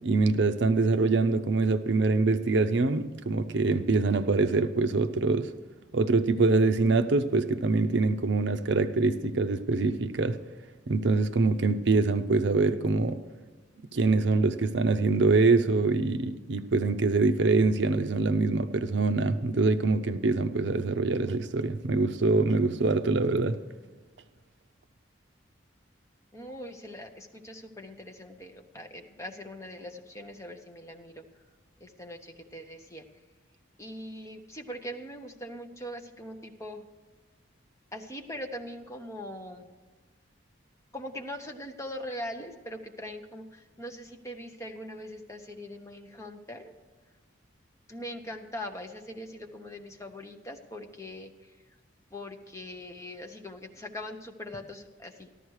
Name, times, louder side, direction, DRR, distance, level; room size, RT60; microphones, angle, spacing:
voice 1, 0.0-5.5 5.9-10.4 10.9-13.2 13.9-23.6, right 3 dB, 65° right, 0.6 m, -24 dB
voice 2, 26.3-31.2 31.8-33.0 33.8-36.9 37.9-39.7 40.9-46.7 47.9-51.6 52.1-55.3, left 1 dB, 15° left, 0.9 m, -41 dB
14.0 x 12.5 x 4.7 m
head